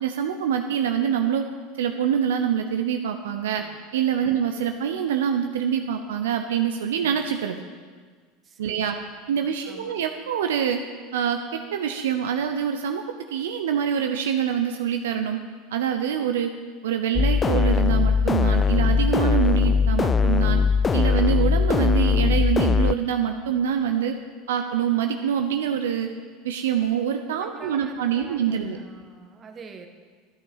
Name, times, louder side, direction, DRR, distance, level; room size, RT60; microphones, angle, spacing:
voice 1, 0.0-1.5 1.8-3.6 3.9-7.6 8.6-9.0 9.3-10.8 11.1-13.0 13.3-15.4 15.7-16.5 16.8-20.6 20.9-24.2 24.5-26.1 26.4-28.8, right 8 dB, 75° right, 5 dB, 0.7 m, -25 dB
voice 2, 8.4-9.1 9.4-9.9 27.4-29.9, right 5 dB, 30° right, 4 dB, 1.5 m, -45 dB
sound 1, 17.2-22.9, left 5 dB, 25° left, 0.3 m, -20 dB
12.0 x 9.1 x 5.5 m, 1.5 s
hypercardioid pair, 80°, 0 cm